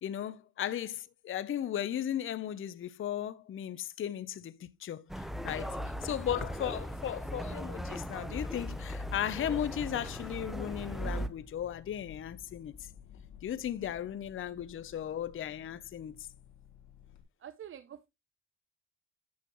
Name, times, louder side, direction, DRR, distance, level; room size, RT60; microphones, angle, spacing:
voice 1, 0.0-12.8 13.4-16.3, left 10 dB, 45° left, 0.6 m, -36 dB
sound 1, 5.1-11.3, equal, ahead, 0.6 m, -38 dB
sound 2, 5.5-17.2, left 8 dB, 70° left, 1.7 m, -52 dB
voice 2, 17.4-18.1, right 9 dB, 45° right, 0.5 m, -47 dB
9.3 x 6.0 x 2.9 m
cardioid pair, 90°, 30 cm